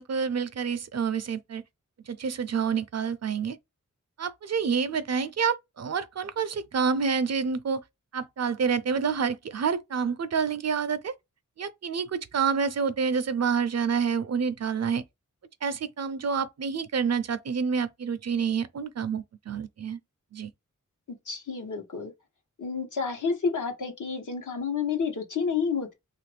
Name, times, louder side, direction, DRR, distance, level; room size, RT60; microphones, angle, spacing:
voice 1, 0.0-1.6 2.1-3.6 4.2-7.8 8.1-11.1 11.6-15.0 15.6-20.0 20.3-20.5, right 6 dB, 55° right, 0.5 m, -28 dB
voice 2, 21.1-22.1 22.6-25.9, left 5 dB, 75° left, 1.0 m, -30 dB
3.0 x 2.5 x 3.2 m
wide cardioid pair, 80°, 31 cm